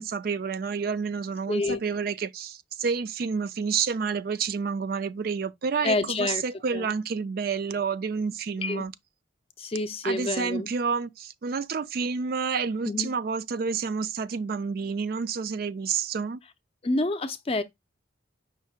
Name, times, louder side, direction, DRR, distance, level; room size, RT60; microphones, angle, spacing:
voice 1, 0.0-8.9 10.0-16.4, right 5 dB, 50° right, 0.4 m, -29 dB
voice 2, 1.5-1.8 5.8-6.4 6.7-6.9 8.6-8.8 9.6-10.7 12.9-13.1 16.8-17.6, left 2 dB, 30° left, 0.5 m, -28 dB
5.6 x 2.0 x 4.3 m
head